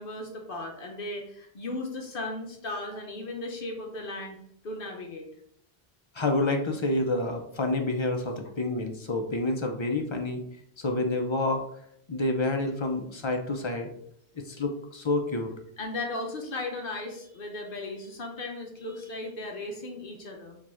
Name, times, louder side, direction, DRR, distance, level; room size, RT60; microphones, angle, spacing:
voice 1, 0.0-4.4 4.6-5.3 15.8-20.6, left 2 dB, 60° left, 1 dB, 0.9 m, -36 dB
voice 2, 6.1-10.4 10.8-11.6 12.1-13.9 14.3-15.5, left 2 dB, 35° left, 4 dB, 0.5 m, -28 dB
4.7 x 2.4 x 4.2 m, 0.68 s
omnidirectional pair, 1.1 m